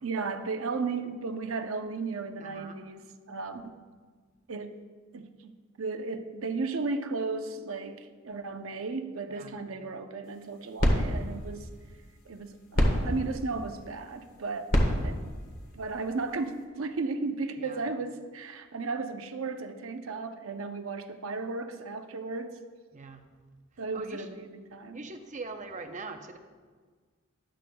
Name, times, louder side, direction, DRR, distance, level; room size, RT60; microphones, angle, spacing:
voice 1, 0.0-3.7 4.5-4.8 5.1-5.5 5.8-11.7 12.2-14.7 15.0-15.2 15.7-22.6 23.8-25.0, right 3 dB, 80° right, 7 dB, 0.7 m, -35 dB
voice 2, 2.4-2.7 9.3-9.5 14.8-15.0 17.6-17.8 22.9-23.2 23.9-24.2 24.9-26.4, right 3 dB, 40° right, 6 dB, 0.7 m, -42 dB
sound 1, 10.2-16.6, equal, 45° left, 1.5 m, -30 dB
12.5 x 11.5 x 2.3 m, 1.5 s
head